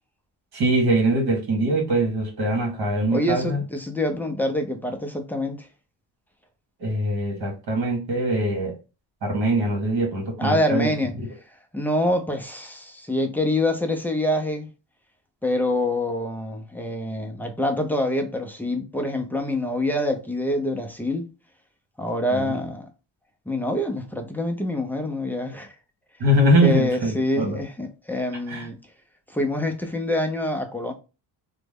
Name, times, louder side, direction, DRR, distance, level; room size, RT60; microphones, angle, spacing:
voice 1, 0.5-3.6 6.8-8.7 9.2-10.9 22.3-22.5 26.2-27.6 28.5-28.7, right 1 dB, 65° right, 1.6 m, -22 dB
voice 2, 3.1-5.7 10.4-11.1 11.7-14.7 15.4-21.3 22.0-22.9 23.5-25.7 26.6-28.8 29.3-30.9, left 1 dB, 5° left, 0.4 m, -26 dB
3.0 x 2.1 x 3.4 m
cardioid pair, 115°, 41 cm